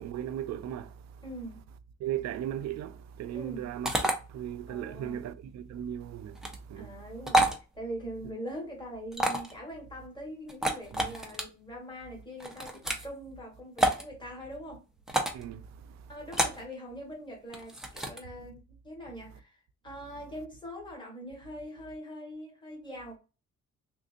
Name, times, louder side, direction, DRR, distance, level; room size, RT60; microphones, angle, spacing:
voice 1, 0.0-1.2 2.0-6.9 10.9-11.1 15.3-16.1, right 10 dB, 65° right, 0.5 m, -37 dB
voice 2, 1.2-1.7 3.3-3.7 4.7-5.3 6.8-14.8 16.1-23.2, equal, 15° left, 1.5 m, -43 dB
sound 1, 3.8-4.1 6.3-6.6 7.3-7.6 9.1-9.5 10.5-11.4 12.4-13.1 13.8-14.0 15.1-15.4 16.3-16.6 17.5-18.2, right 1 dB, ahead, 0.5 m, -28 dB
3.6 x 2.6 x 2.5 m
cardioid pair, 125°, 30 cm